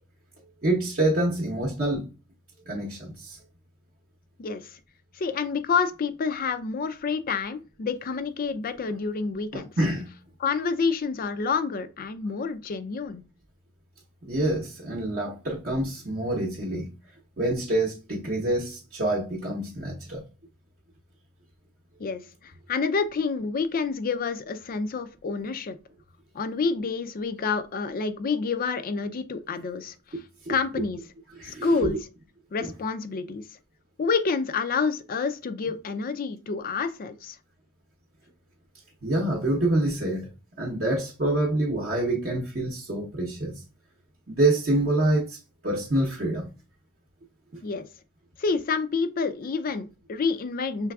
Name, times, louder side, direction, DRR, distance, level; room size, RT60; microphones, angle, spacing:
voice 1, 0.6-2.1 2.7-3.4 9.5-10.1 14.2-16.9 17.4-20.2 30.1-30.6 31.4-32.0 32.6-32.7 39.0-40.3 40.6-43.5 44.3-46.5, right 1 dB, 40° right, 0.7 m, -26 dB
voice 2, 4.4-4.8 5.1-9.7 10.4-13.2 22.0-25.8 26.3-30.2 30.5-31.0 31.4-32.0 32.5-33.4 34.0-37.4 47.6-47.9 48.4-50.9, left 5 dB, 40° left, 0.4 m, -28 dB
5.9 x 3.3 x 2.3 m
head